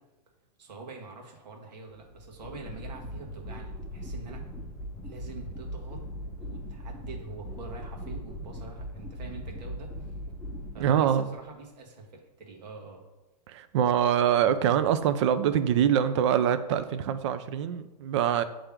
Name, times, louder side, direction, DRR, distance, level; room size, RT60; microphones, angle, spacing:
voice 1, 0.6-4.4 5.0-10.1 10.7-13.0, right 4 dB, 85° right, 1 dB, 1.6 m, -45 dB
sound 1, 1.9-11.5, equal, 5° left, 0.7 m, -39 dB
voice 2, 10.8-11.3 13.5-18.4, right 9 dB, 45° right, 11 dB, 0.4 m, -24 dB
8.2 x 3.4 x 3.6 m, 1.0 s
supercardioid pair, 165°, 21 cm